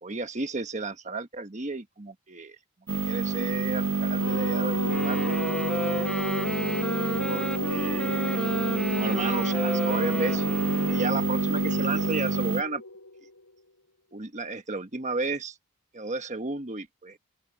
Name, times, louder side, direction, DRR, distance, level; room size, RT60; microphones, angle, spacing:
voice 1, 0.0-2.6 3.1-5.2 7.2-8.4 8.9-10.6 10.9-12.8 14.1-15.6 15.9-17.2, right 3 dB, 30° right, 1.2 m, -33 dB
sound 1, 2.9-12.6, right 3 dB, 75° right, 1.2 m, -28 dB
sound 2, 4.2-13.5, left 2 dB, 70° left, 5.6 m, -34 dB
Wind instrument woodwind instrument, 4.9-11.3, equal, 5° left, 1.2 m, -34 dB
open air
head